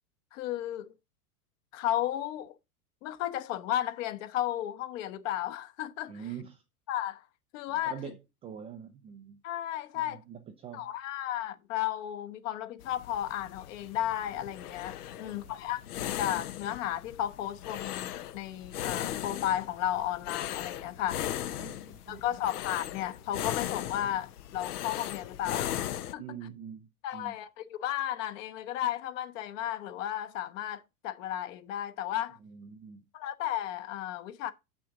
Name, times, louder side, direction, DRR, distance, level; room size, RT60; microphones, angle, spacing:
voice 1, 0.3-0.9 1.7-2.6 3.0-6.3 6.9-7.2 7.5-7.9 9.4-10.2 10.7-21.2 22.1-25.8 26.1-26.4 27.0-32.4 33.1-34.5, left 12 dB, 55° left, 1.1 m, -34 dB
voice 2, 6.1-6.6 7.9-9.4 9.9-10.9 15.1-15.6 21.6-22.2 26.2-27.3 32.4-33.0, right 8 dB, 15° right, 0.3 m, -45 dB
sound 1, 12.8-26.1, left 12 dB, 80° left, 0.7 m, -38 dB
7.9 x 6.1 x 3.7 m
hypercardioid pair, 110°, 46 cm